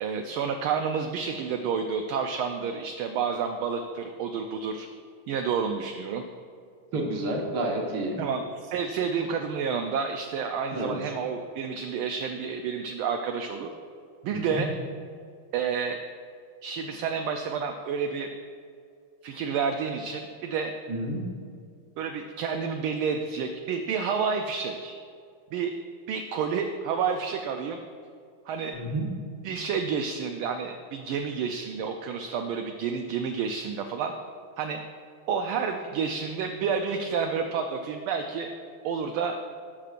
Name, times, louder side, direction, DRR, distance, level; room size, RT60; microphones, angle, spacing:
voice 1, 0.0-4.9 5.3-6.2 8.2-13.7 14.2-14.7 15.5-16.0 16.6-18.3 19.2-20.7 22.0-24.9 25.5-25.7 26.1-27.8 28.5-28.8 29.4-34.1 34.6-34.8 35.3-38.5 38.8-39.4, right 6 dB, 80° right, 4 dB, 1.3 m, -30 dB
voice 2, 6.9-8.2 10.7-10.9 14.3-14.6 20.9-21.3 28.7-29.2, right 1 dB, 55° right, 0 dB, 1.7 m, -30 dB
16.0 x 6.6 x 2.5 m, 2.3 s
omnidirectional pair, 2.4 m